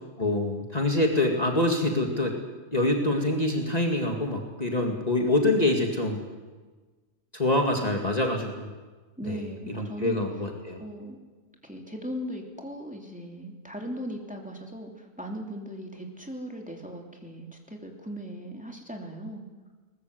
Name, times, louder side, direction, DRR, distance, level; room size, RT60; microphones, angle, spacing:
voice 1, 0.2-2.3 2.7-6.2 7.3-8.7 9.3-9.4 9.8-10.8, left 1 dB, 30° left, 2 dB, 2.3 m, -25 dB
voice 2, 9.2-10.2 10.8-11.2 11.6-19.5, equal, 5° right, 1 dB, 3.0 m, -38 dB
22.5 x 20.5 x 7.9 m, 1.3 s
omnidirectional pair, 1.3 m